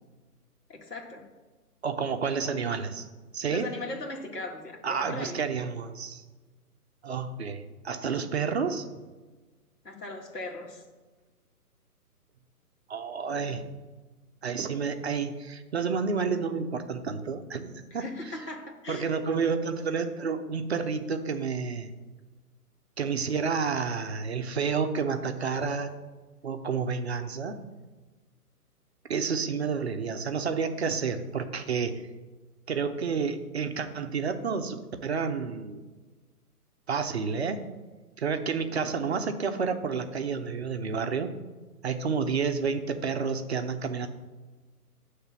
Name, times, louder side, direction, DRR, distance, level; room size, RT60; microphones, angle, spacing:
voice 1, 0.7-1.3 3.5-5.4 9.8-10.8 17.9-19.1, left 2 dB, 85° left, 1 dB, 1.8 m, -38 dB
voice 2, 1.8-3.1 3.3-3.7 4.8-6.2 7.0-9.0 12.9-13.6 14.4-18.1 18.9-21.9 23.0-25.9 26.4-27.6 29.1-32.1 32.7-35.8 36.9-37.7 38.2-41.3 41.8-44.1, right 5 dB, 45° right, 7 dB, 0.6 m, -30 dB
7.9 x 3.3 x 5.8 m, 1.3 s
figure-of-eight pair, 145°, 46 cm